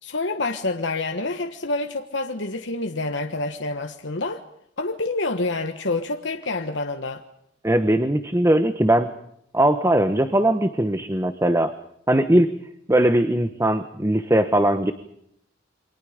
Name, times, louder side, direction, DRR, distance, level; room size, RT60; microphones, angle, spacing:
voice 1, 0.0-4.4 4.8-7.2, left 2 dB, 65° left, 1.4 m, -27 dB
voice 2, 7.6-9.1 9.5-11.7 12.1-12.5 12.9-14.9, right 1 dB, 15° right, 1.1 m, -20 dB
29.0 x 24.5 x 5.1 m
head